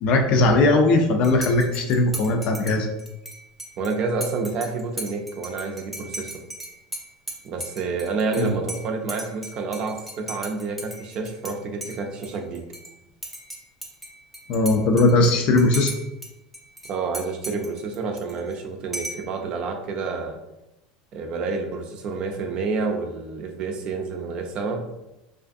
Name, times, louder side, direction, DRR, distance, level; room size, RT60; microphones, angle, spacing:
voice 1, 0.0-2.9 8.4-8.6 14.5-15.9, left 2 dB, 55° left, 3 dB, 0.4 m, -19 dB
Dishes pots and pans / Cutlery silverware / Chink clink, 1.2-11.5 11.8-12.9 13.2-16.3 16.5-18.5 18.9-19.3, right 1 dB, ahead, 0.5 m, -37 dB
voice 2, 3.8-6.3 7.4-12.6 16.9-20.4 21.1-24.9, right 4 dB, 50° right, 3 dB, 0.4 m, -29 dB
2.4 x 2.4 x 2.4 m, 0.94 s
supercardioid pair, 100°, 2 cm